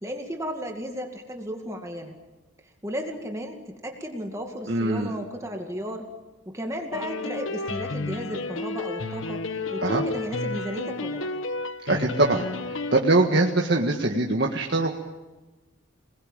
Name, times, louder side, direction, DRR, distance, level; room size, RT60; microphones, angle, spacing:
voice 1, 0.0-2.2 2.6-6.1 6.5-9.4 9.7-11.3, equal, 15° right, 3 dB, 2.2 m, -34 dB
voice 2, 4.7-5.1 9.8-10.0 11.9-12.4 12.9-15.0, right 2 dB, 55° right, 0 dB, 1.8 m, -22 dB
sound 1, 6.9-13.0, left 2 dB, 90° left, 1.2 m, -31 dB
27.5 x 20.5 x 9.0 m, 1.2 s
head